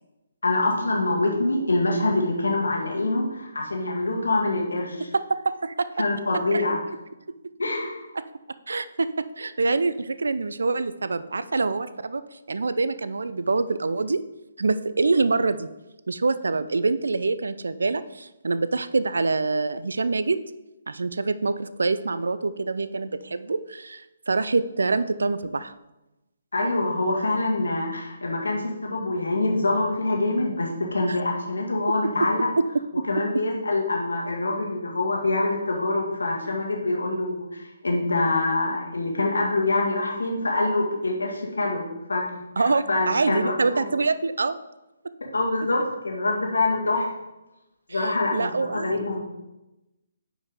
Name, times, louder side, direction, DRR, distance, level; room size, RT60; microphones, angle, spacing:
voice 1, 0.4-5.1 6.0-6.8 7.6-8.0 26.5-32.5 33.1-41.8 42.1-42.2 42.6-43.9 45.2-47.1 47.9-49.2, left 2 dB, 70° left, -1 dB, 2.0 m, -25 dB
voice 2, 5.1-5.9 6.5-6.6 8.7-12.2 12.5-14.2 14.6-15.7 16.1-20.4 20.9-25.7 31.1-31.2 42.6-44.6 47.9-49.0, right 3 dB, 65° right, 14 dB, 0.4 m, -25 dB
9.3 x 5.2 x 3.6 m, 0.99 s
figure-of-eight pair, 135°, 0 cm